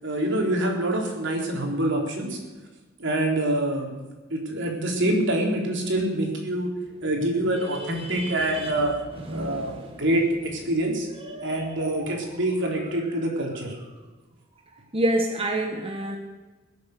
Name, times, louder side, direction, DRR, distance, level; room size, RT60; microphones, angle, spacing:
voice 1, 0.0-2.4 3.0-3.9 4.3-6.7 7.0-8.9 9.3-9.7 10.0-11.1 11.4-13.8, right 1 dB, 65° right, 1 dB, 3.8 m, -25 dB
voice 2, 7.5-8.8 9.3-10.0 11.1-11.8 14.9-16.2, right 1 dB, 30° right, 3 dB, 1.2 m, -29 dB
22.0 x 8.1 x 6.7 m, 1.3 s
head